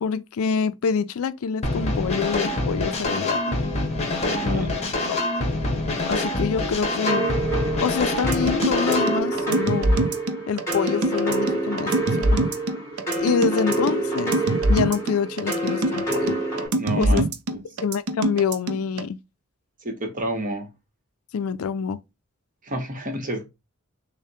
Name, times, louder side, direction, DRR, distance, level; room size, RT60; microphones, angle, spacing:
voice 1, 0.0-3.6 4.4-4.7 5.1-5.2 6.1-7.3 7.8-10.0 10.5-12.4 13.2-14.4 14.7-16.4 17.0-17.2 17.8-19.2 21.3-22.0, left 6 dB, 70° left, 0.4 m, -26 dB
sound 1, 1.6-9.2, left 2 dB, 30° left, 0.9 m, -25 dB
voice 2, 4.2-4.7 5.0-5.1 16.7-17.3 17.5-17.6 19.8-20.7 22.6-23.4, right 1 dB, 35° right, 1.0 m, -29 dB
sound 2, 7.1-16.7, right 2 dB, 15° left, 2.1 m, -27 dB
sound 3, 8.2-19.0, right 1 dB, 80° right, 0.6 m, -24 dB
6.4 x 2.1 x 2.7 m
head